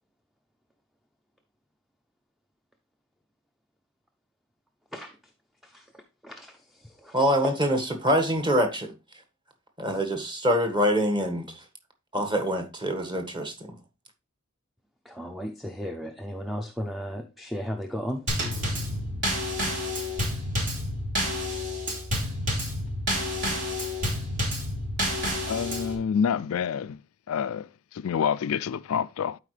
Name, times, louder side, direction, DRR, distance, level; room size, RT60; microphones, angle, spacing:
voice 1, 5.6-7.3 9.9-10.0 15.0-18.3, equal, ahead, 0.6 m, -36 dB
voice 2, 7.1-8.9 9.8-11.6 12.1-13.7, equal, 20° right, 1.6 m, -25 dB
Drum kit / Snare drum / Bass drum, 18.3-26.0, equal, 55° right, 3.5 m, -29 dB
voice 3, 25.5-27.0 27.3-27.7 27.9-29.4, left 7 dB, 80° left, 0.4 m, -27 dB
12.0 x 4.8 x 3.3 m
head